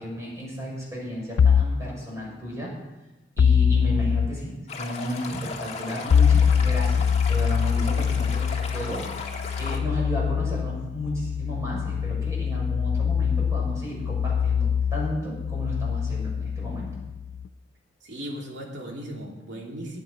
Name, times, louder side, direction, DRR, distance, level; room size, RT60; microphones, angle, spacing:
voice 1, 0.0-2.7 3.4-9.1 9.6-16.9, equal, 15° right, -4 dB, 6.1 m, -33 dB
sound 1, 1.4-1.8 3.4-4.3 6.1-17.5, left 7 dB, 85° left, 0.4 m, -23 dB
Stream, 4.7-9.8, left 4 dB, 35° left, 1.6 m, -36 dB
voice 2, 18.0-20.0, equal, 70° right, -1 dB, 2.9 m, -37 dB
18.0 x 8.2 x 5.2 m, 1.0 s
head